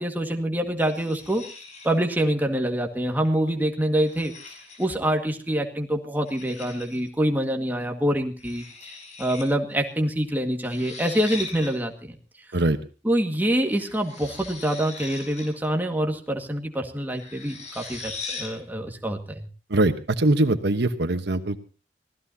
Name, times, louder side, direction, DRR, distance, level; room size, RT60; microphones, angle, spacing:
voice 1, 0.0-1.4 1.8-4.3 4.8-8.9 9.2-12.2 13.0-19.5, right 1 dB, 10° right, 2 dB, 1.8 m, -26 dB
sound 1, 0.8-2.1 3.2-3.5 4.0-5.1 6.3-7.1 8.4-9.5 9.7-9.8 10.6-11.7 13.7-15.6 17.1-18.6, left 4 dB, 40° left, 5.8 m, -40 dB
voice 2, 19.7-21.6, right 2 dB, 65° right, 9 dB, 1.2 m, -22 dB
25.0 x 16.5 x 2.8 m, 0.34 s
head